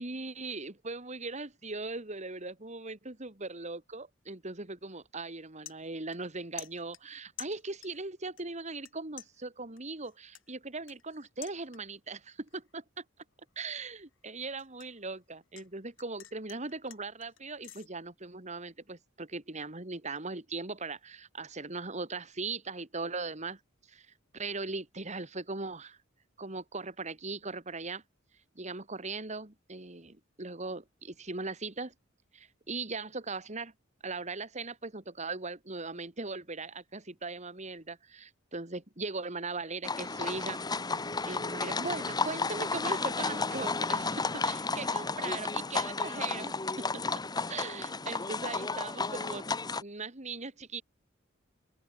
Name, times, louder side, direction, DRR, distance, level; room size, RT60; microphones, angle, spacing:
voice 1, 0.0-12.8 13.6-23.6 23.9-24.1 24.3-26.0 26.4-28.0 28.6-31.9 32.3-33.7 34.0-40.6 41.2-47.0 47.5-49.4 49.8-50.8, right 3 dB, 35° right, 2.7 m, -39 dB
sound 1, 4.7-4.9 5.3-6.3 6.6-8.1 8.4-8.9 9.2-12.1 12.5-12.8 13.2-15.7 16.0-17.9, left 13 dB, 85° left, 5.8 m, -50 dB
sound 2, 39.8-49.8, left 4 dB, 20° left, 1.2 m, -33 dB
open air
head